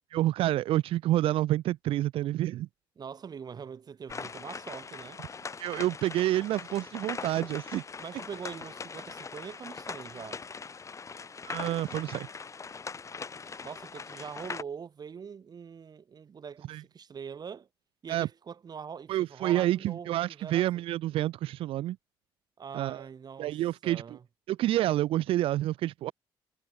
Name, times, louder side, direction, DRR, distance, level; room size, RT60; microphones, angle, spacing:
voice 1, 0.1-2.7 5.6-7.8 11.4-12.3 16.7-16.8 18.1-18.3 19.1-22.0 22.7-23.0 23.4-24.0 24.5-26.1, right 14 dB, 70° right, 0.4 m, -28 dB
voice 2, 3.0-5.2 8.0-10.4 13.6-17.7 18.0-20.7 22.6-23.6 23.8-24.2, right 6 dB, 45° right, 2.5 m, -43 dB
sound 1, 4.1-14.6, left 5 dB, 30° left, 1.3 m, -41 dB
cardioid pair, 85°, 10 cm